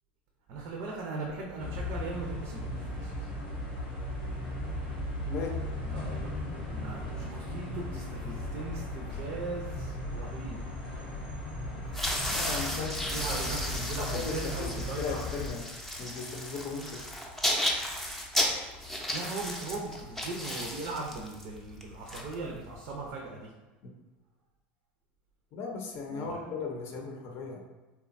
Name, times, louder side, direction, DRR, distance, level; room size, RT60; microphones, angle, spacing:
voice 1, 0.5-3.3 5.8-6.3 6.7-10.6 12.7-15.2 19.1-23.5 26.1-26.4, right 3 dB, 60° right, -1 dB, 0.5 m, -39 dB
sound 1, 1.6-15.5, left 1 dB, 90° left, 1.0 m, -37 dB
sound 2, 11.9-22.9, left 1 dB, 5° left, 0.5 m, -34 dB
voice 2, 12.3-13.4 14.0-15.6 16.0-17.0 23.8-23.9 25.5-27.6, left 4 dB, 50° left, 1 dB, 0.6 m, -37 dB
2.8 x 2.2 x 2.5 m, 1.1 s
hypercardioid pair, 90°, 5 cm